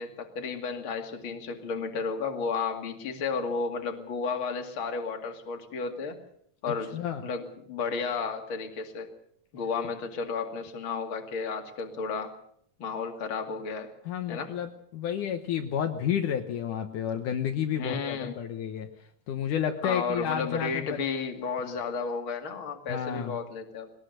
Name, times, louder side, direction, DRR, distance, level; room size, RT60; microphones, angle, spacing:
voice 1, 0.0-6.2 6.6-9.1 9.5-12.3 12.8-13.9 14.3-14.6 17.7-18.4 19.8-23.9, left 5 dB, 40° left, 4 dB, 2.8 m, -33 dB
voice 2, 6.9-7.3 14.1-18.9 19.3-21.0 22.9-23.4, left 9 dB, 70° left, 5 dB, 2.6 m, -31 dB
21.0 x 19.5 x 6.6 m, 0.67 s
omnidirectional pair, 3.8 m